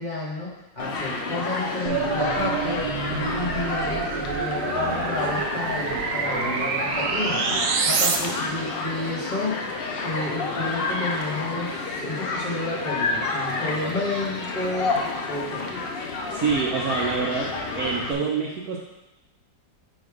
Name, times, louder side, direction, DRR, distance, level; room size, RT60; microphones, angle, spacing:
voice 1, 0.0-9.6 10.0-14.9 15.3-15.7, left 2 dB, 30° left, -7 dB, 1.2 m, -31 dB
Human group actions, 0.8-18.1, left 3 dB, 65° left, 0.6 m, -30 dB
sound 1, 1.9-8.2, right 5 dB, 85° right, 1.2 m, -27 dB
voice 2, 16.3-17.5 17.8-18.8, right 5 dB, 70° right, -2 dB, 1.1 m, -26 dB
5.2 x 4.2 x 4.8 m, 0.97 s
omnidirectional pair, 1.8 m